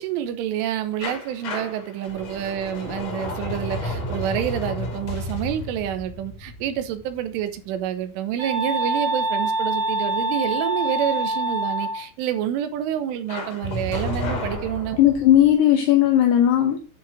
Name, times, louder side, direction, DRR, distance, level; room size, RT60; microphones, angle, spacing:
voice 1, 0.0-15.0, right 10 dB, 80° right, 3.3 m, -28 dB
sound 1, 1.0-7.8 13.3-15.5, left 1 dB, 45° left, 2.4 m, -32 dB
sound 2, 8.4-12.0, right 1 dB, 60° right, 0.9 m, -25 dB
voice 2, 15.0-16.8, left 11 dB, 80° left, 2.4 m, -17 dB
9.4 x 5.6 x 4.9 m
omnidirectional pair, 5.9 m